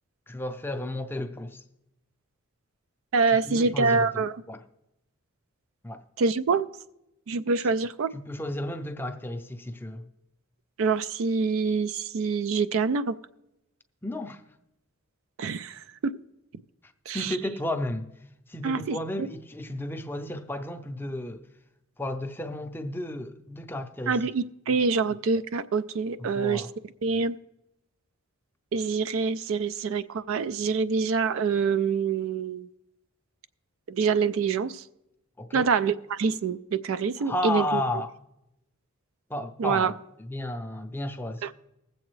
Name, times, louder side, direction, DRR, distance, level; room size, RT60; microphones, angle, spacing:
voice 1, 0.3-1.6 3.3-4.1 4.5-4.6 5.8-6.0 8.1-10.1 14.0-14.4 17.1-18.1 18.5-21.4 22.0-24.2 26.2-26.7 35.4-35.7 37.2-38.1 39.3-39.9 40.3-41.5, left 1 dB, 10° left, 0.5 m, -33 dB
voice 2, 3.1-4.4 6.2-6.7 7.3-8.1 10.8-13.2 15.4-16.1 17.1-17.4 18.6-19.0 24.1-26.6 27.0-27.4 28.7-32.7 33.9-34.8 35.5-37.8 39.6-39.9 41.4-41.5, right 5 dB, 65° right, 0.4 m, -26 dB
20.5 x 7.7 x 3.1 m
head